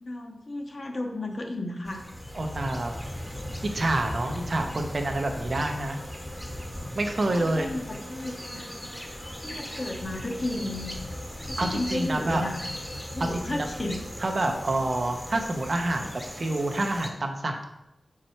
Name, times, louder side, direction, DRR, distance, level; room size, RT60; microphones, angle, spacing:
voice 1, 0.0-2.0 7.3-8.7 9.4-10.9 11.5-12.6 13.1-14.0, left 2 dB, 40° left, 3 dB, 1.1 m, -33 dB
sound 1, 1.9-17.1, equal, 10° left, 1.1 m, -38 dB
voice 2, 2.3-3.0 3.7-6.0 6.9-7.7 11.6-12.5 13.3-17.7, right 2 dB, 50° right, 4 dB, 1.0 m, -28 dB
6.8 x 4.9 x 4.5 m, 0.85 s
wide cardioid pair, 125°, 0 cm